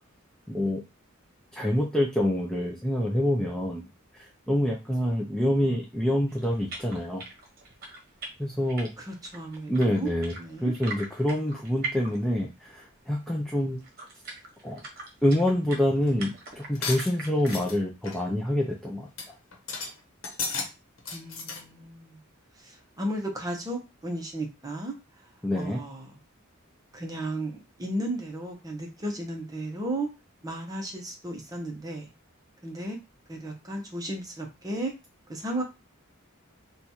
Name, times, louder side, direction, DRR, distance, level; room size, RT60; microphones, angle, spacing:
voice 1, 0.5-0.8 1.5-3.8 4.1-7.2 8.4-8.9 9.7-10.4 10.6-13.8 14.6-14.8 15.2-19.1 25.4-25.8, left 1 dB, 5° left, -1 dB, 0.4 m, -26 dB
sound 1, 6.3-12.6 12.9-13.0 13.6-17.7, right 3 dB, 45° right, 1.0 m, -42 dB
voice 2, 9.0-10.1 10.4-10.7 21.1-22.2 22.6-25.0 25.5-26.1 26.9-30.1 30.4-32.1 32.6-33.0 33.3-34.9 35.3-35.6, right 1 dB, 20° right, 1 dB, 0.8 m, -34 dB
sound 2, 16.8-17.8 18.0-18.3 18.7-18.8 19.2-19.3 19.5-19.9 20.2-20.7 21.0-21.6, left 4 dB, 70° left, 1.0 m, -34 dB
3.0 x 2.3 x 4.1 m, 0.26 s
head